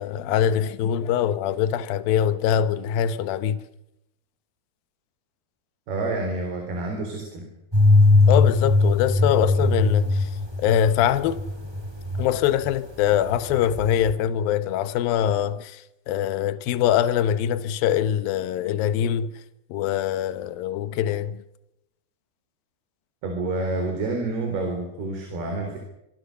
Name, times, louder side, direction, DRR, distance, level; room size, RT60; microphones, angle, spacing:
voice 1, 0.0-3.6 8.3-10.2 10.6-11.4 12.2-15.7 16.1-19.3 19.7-21.4, left 9 dB, 70° left, 2.7 m, -23 dB
voice 2, 5.9-7.5 23.2-25.8, right 2 dB, 75° right, 6.0 m, -28 dB
sound 1, 7.7-12.8 13.0-14.1, left 3 dB, 5° right, 3.5 m, -20 dB
26.5 x 23.5 x 6.8 m
omnidirectional pair, 4.6 m